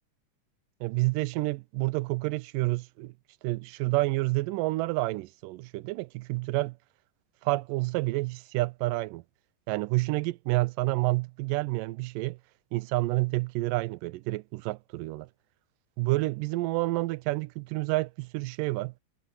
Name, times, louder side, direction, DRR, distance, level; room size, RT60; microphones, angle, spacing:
voice 1, 0.8-3.1 3.4-6.8 7.4-9.2 9.7-12.4 12.7-15.3 16.0-18.9, right 21 dB, 90° right, 2.2 m, -29 dB
omnidirectional pair, 3.8 m